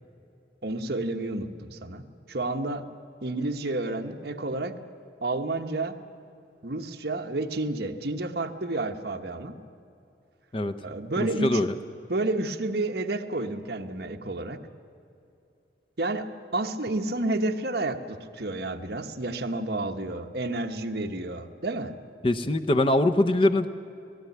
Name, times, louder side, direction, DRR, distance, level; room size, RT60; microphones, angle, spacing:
voice 1, 0.6-2.0 2.3-2.9 3.2-4.8 5.2-6.0 6.6-9.5 10.8-11.7 12.1-14.6 16.0-16.3 16.5-21.9, right 2 dB, 60° right, 4 dB, 1.2 m, -30 dB
voice 2, 11.2-11.7 22.2-23.7, left 1 dB, 30° left, 7 dB, 0.7 m, -23 dB
19.0 x 16.0 x 9.4 m, 2.7 s
head